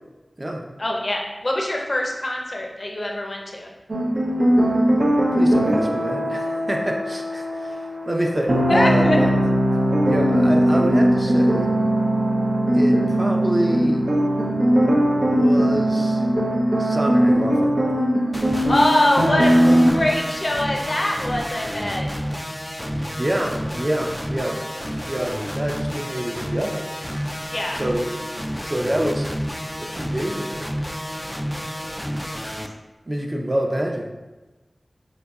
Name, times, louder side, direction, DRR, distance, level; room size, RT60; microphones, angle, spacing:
voice 1, 0.8-3.7 8.7-9.2 18.6-22.1 27.5-27.8 32.6-32.7, left 1 dB, 60° left, 0 dB, 0.6 m, -23 dB
sound 1, 3.9-19.9, equal, 75° right, 0.6 m, -19 dB
voice 2, 5.4-9.3 10.1-11.7 12.7-14.1 15.3-16.2 16.8-17.9 22.9-24.6 25.1-26.8 27.7-28.2 28.6-29.4 29.8-30.7 33.1-34.1, right 1 dB, 35° right, 1 dB, 0.6 m, -27 dB
sound 2, 18.3-32.7, equal, 10° left, 0.3 m, -30 dB
3.9 x 3.8 x 2.4 m, 1.1 s
wide cardioid pair, 40°, 0 cm